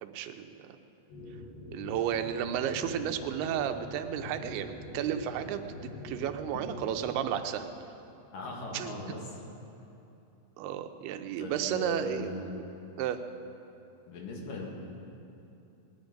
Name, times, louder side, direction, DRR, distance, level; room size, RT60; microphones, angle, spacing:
voice 1, 0.0-0.7 1.7-7.7 8.7-8.9 10.6-12.6 13.0-13.2, right 10 dB, 85° right, 8 dB, 2.7 m, -33 dB
sound 1, 1.1-7.1, left 2 dB, 75° left, 5.9 m, -44 dB
voice 2, 8.3-9.2 11.4-12.5 14.1-14.7, left 3 dB, 60° left, -1 dB, 3.4 m, -39 dB
19.0 x 11.0 x 5.2 m, 2.9 s
omnidirectional pair, 4.5 m